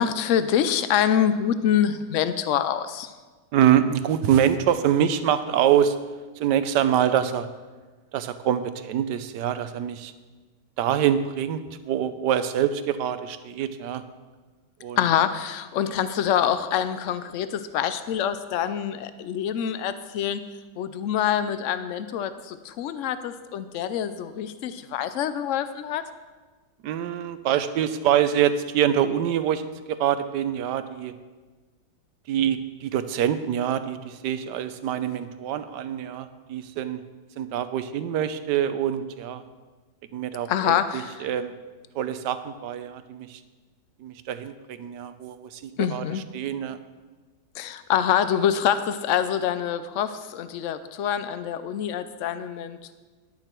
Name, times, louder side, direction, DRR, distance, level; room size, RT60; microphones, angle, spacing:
voice 1, 0.0-3.1 15.0-20.4 20.8-26.0 40.5-41.3 45.8-46.2 47.6-52.9, left 9 dB, 85° left, 12 dB, 0.6 m, -25 dB
voice 2, 3.5-6.0 6.4-7.5 8.1-10.1 10.8-14.0 14.8-15.0 26.8-29.6 29.9-31.2 32.3-37.0 37.4-39.4 40.1-41.6 41.9-43.4 44.0-46.0 46.3-46.8, right 10 dB, 75° right, 11 dB, 1.3 m, -25 dB
11.0 x 9.8 x 4.5 m, 1.3 s
omnidirectional pair, 1.9 m